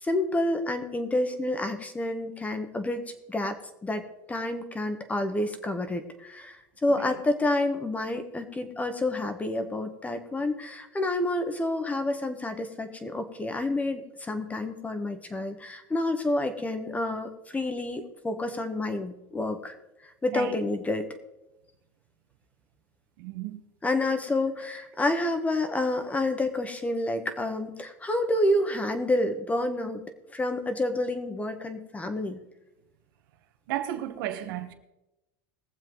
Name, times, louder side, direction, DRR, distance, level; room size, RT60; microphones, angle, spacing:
voice 1, 0.0-3.0 3.3-3.6 3.8-19.7 20.2-21.1 23.8-30.0 30.3-32.4, left 1 dB, 10° left, 1.5 m, -29 dB
voice 2, 23.2-23.6 33.7-34.7, right 12 dB, 75° right, 1.5 m, -33 dB
21.0 x 7.4 x 4.0 m
supercardioid pair, 130°, 11 cm